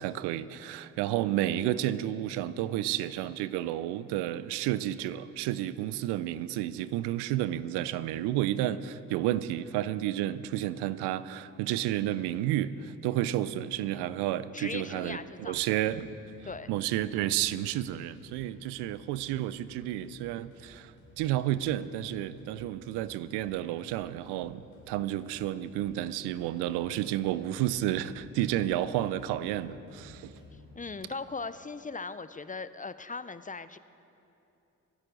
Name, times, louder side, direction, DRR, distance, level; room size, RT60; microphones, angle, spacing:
voice 1, 0.0-16.1 16.7-30.3, right 13 dB, 75° right, 16 dB, 0.6 m, -31 dB
voice 2, 14.5-15.8 16.4-16.7 30.5-33.8, left 4 dB, 20° left, 13 dB, 0.5 m, -39 dB
sound 1, 15.0-30.9, left 2 dB, 75° left, 3.7 m, -57 dB
24.0 x 10.5 x 3.9 m, 2.8 s
hypercardioid pair, 40°, 41 cm